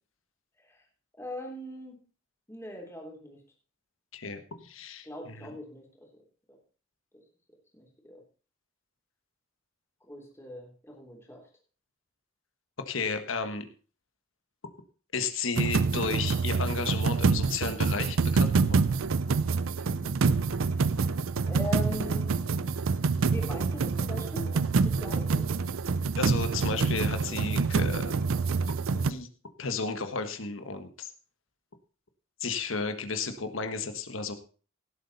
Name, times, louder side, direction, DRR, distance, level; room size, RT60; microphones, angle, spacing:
voice 1, 1.2-2.0 2.5-3.4 5.0-5.9 6.5-6.6 7.7-8.2 10.1-11.4 19.8-20.1 20.5-20.8 21.5-22.3 23.1-25.6, left 1 dB, 15° left, 0 dB, 3.5 m, -41 dB
voice 2, 4.1-5.5 12.9-13.6 15.1-18.8 26.2-28.1 28.9-29.3 29.6-31.1 32.4-34.3, left 4 dB, 75° left, 8 dB, 1.4 m, -33 dB
sound 1, 15.6-29.1, right 4 dB, 85° right, 0.5 m, -26 dB
17.0 x 8.0 x 4.2 m, 0.39 s
head